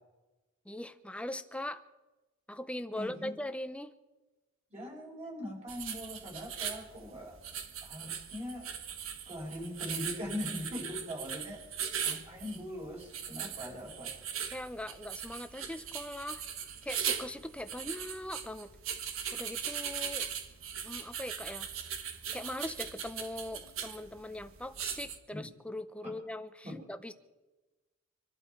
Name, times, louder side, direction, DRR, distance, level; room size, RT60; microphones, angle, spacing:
voice 1, 0.7-1.8 2.5-3.9 14.5-16.4 16.8-18.7 19.3-20.3 20.8-21.7 22.3-27.1, left 1 dB, 5° left, 10 dB, 0.7 m, -41 dB
voice 2, 3.0-3.4 4.7-7.4 7.8-8.7 9.3-11.6 12.0-14.1 25.3-25.5 26.6-26.7, left 1 dB, 30° right, -3 dB, 5.5 m, -41 dB
sound 1, 5.7-25.2, right 8 dB, 70° right, 1.4 m, -39 dB
25.5 x 12.0 x 4.6 m, 1.2 s
head